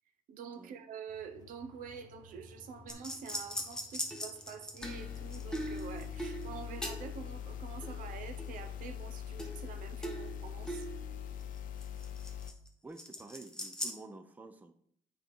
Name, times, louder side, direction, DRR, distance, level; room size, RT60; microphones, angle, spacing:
voice 1, 0.3-10.9, right 6 dB, 75° right, 8 dB, 1.0 m, -47 dB
sound 1, 1.1-8.9, left 2 dB, 30° left, 1.6 m, -59 dB
sound 2, 2.9-7.3 7.8-8.7 9.4-9.7 10.0-12.7 13.0-13.9, equal, 5° left, 1.2 m, -41 dB
sound 3, 4.8-12.5, left 9 dB, 75° left, 0.7 m, -42 dB
voice 2, 12.8-14.7, right 3 dB, 10° right, 8 dB, 0.6 m, -50 dB
8.7 x 4.4 x 5.3 m, 0.64 s
cardioid pair, 135°, 14 cm